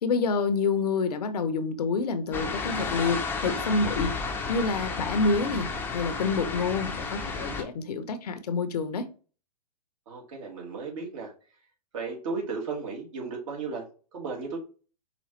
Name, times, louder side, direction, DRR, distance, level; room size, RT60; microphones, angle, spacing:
voice 1, 0.0-4.2 4.5-9.1, left 4 dB, 65° left, 0.8 m, -28 dB
sound 1, 2.3-7.6, left 4 dB, 10° left, 0.7 m, -32 dB
voice 2, 10.1-11.3 11.9-13.9 14.1-14.6, right 4 dB, 50° right, 2.0 m, -34 dB
4.9 x 2.5 x 3.1 m
hypercardioid pair, 120°, 21 cm